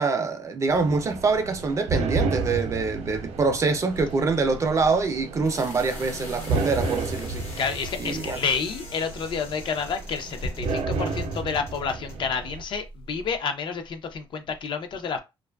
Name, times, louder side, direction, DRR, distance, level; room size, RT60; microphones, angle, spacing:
voice 1, 0.0-7.6 8.0-8.4, right 4 dB, 30° right, 0.4 m, -25 dB
sound 1, 0.7-12.6, right 3 dB, 90° right, 0.5 m, -32 dB
sound 2, 3.3-13.4, left 1 dB, 75° left, 0.9 m, -43 dB
voice 2, 7.6-15.2, left 5 dB, 55° left, 0.4 m, -29 dB
2.4 x 2.3 x 2.2 m
cardioid pair, 140°, 10 cm